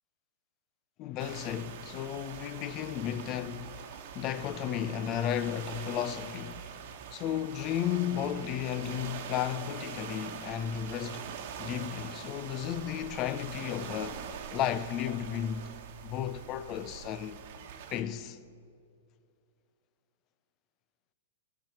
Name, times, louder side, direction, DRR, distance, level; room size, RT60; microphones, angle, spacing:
voice 1, 1.0-6.7 7.1-11.3 11.6-14.2 14.5-15.8 16.0-17.4 17.9-18.4, left 10 dB, 35° left, 0.6 m, -34 dB
sound 1, 1.2-18.0, right 8 dB, 55° right, 1.2 m, -43 dB
17.0 x 6.0 x 7.1 m
hypercardioid pair, 125°, 0 cm